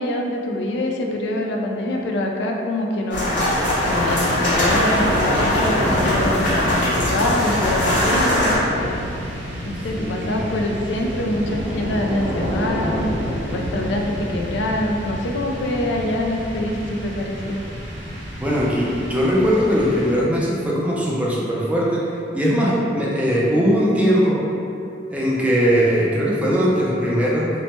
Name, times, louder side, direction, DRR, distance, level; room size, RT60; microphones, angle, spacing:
voice 1, 0.0-3.5 3.9-9.1 9.6-13.1 13.5-17.6, left 1 dB, 70° left, 1 dB, 0.3 m, -25 dB
sound 1, 3.1-8.6, left 1 dB, 45° left, 0.8 m, -21 dB
sound 2, 3.4-14.3, left 2 dB, 90° right, 0.3 m, -41 dB
sound 3, 3.6-20.5, equal, 70° right, 0.8 m, -29 dB
voice 2, 9.9-10.6 18.4-22.1 22.3-24.4 25.1-27.5, equal, 5° right, -6 dB, 0.4 m, -20 dB
3.1 x 2.1 x 2.8 m, 2.7 s
head